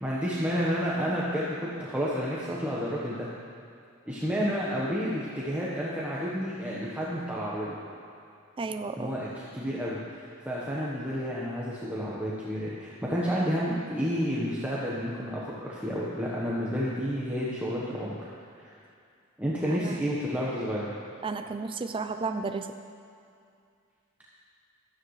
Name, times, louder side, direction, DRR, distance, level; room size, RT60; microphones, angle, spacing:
voice 1, 0.0-3.3 4.1-7.8 9.0-18.2 18.6-18.7 19.4-20.9, equal, 10° right, -7 dB, 1.2 m, -30 dB
voice 2, 8.6-9.1 19.7-20.0 21.2-22.7, right 4 dB, 25° right, 7 dB, 0.4 m, -33 dB
16.0 x 13.0 x 3.3 m, 2.4 s
head